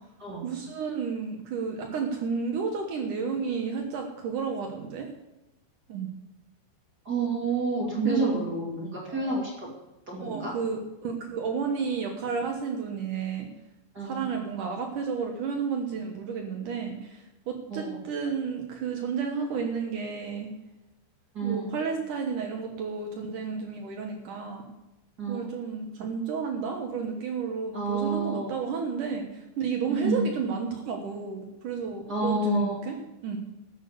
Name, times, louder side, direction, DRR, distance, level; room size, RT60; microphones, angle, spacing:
voice 1, 0.4-5.1 5.9-6.1 8.0-8.5 9.1-9.4 10.2-13.5 14.0-17.2 17.5-20.5 21.4-24.6 25.3-33.0 33.2-33.4, right 5 dB, 80° right, 2 dB, 1.8 m, -32 dB
voice 2, 7.0-9.7 10.1-10.5 13.9-14.3 17.7-18.0 21.3-21.7 25.2-25.5 27.7-28.6 29.9-30.3 32.1-32.8, right 3 dB, 35° right, -4 dB, 1.7 m, -29 dB
13.0 x 8.7 x 6.9 m, 0.97 s
omnidirectional pair, 5.7 m